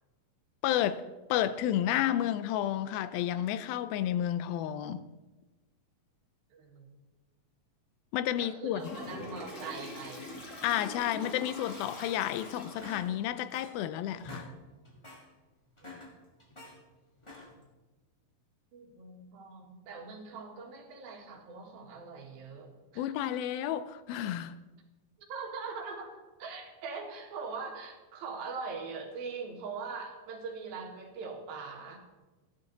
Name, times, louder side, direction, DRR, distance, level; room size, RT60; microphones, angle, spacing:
voice 1, 0.6-1.0 1.3-5.0 8.1-8.8 10.6-14.5 23.0-24.6, left 11 dB, 90° left, 2.5 m, -31 dB
voice 2, 6.5-7.0 8.4-10.3 15.8-16.0 18.7-23.1 25.2-32.0, right 4 dB, 85° right, 3.5 m, -42 dB
Toilet flush, 8.8-13.1, left 2 dB, 35° left, 1.3 m, -43 dB
sound 1, 11.7-12.4 12.8-13.9 14.1-14.5 14.8-15.2 15.7-16.8 17.2-17.7, left 1 dB, 15° left, 1.1 m, -48 dB
14.0 x 11.5 x 4.0 m
omnidirectional pair, 4.1 m